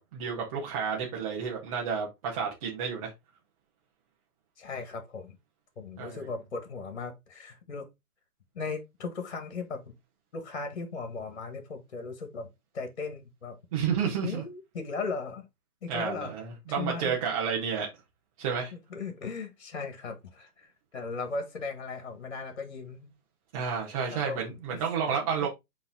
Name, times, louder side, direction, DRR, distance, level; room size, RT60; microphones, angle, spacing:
voice 1, 0.0-3.1 6.0-6.3 13.7-14.4 15.9-17.9 18.4-18.7 23.5-25.5, right 6 dB, 20° right, 1.5 m, -31 dB
voice 2, 4.6-5.4 5.8-7.9 8.6-9.9 10.3-12.5 12.7-13.6 14.2-15.5 15.8-16.3 16.7-17.2 18.7-20.7 20.9-23.1 24.1-24.4 24.7-24.8 25.1-25.5, left 4 dB, 45° left, 1.9 m, -37 dB
7.8 x 3.7 x 3.7 m
figure-of-eight pair, 135°, 46 cm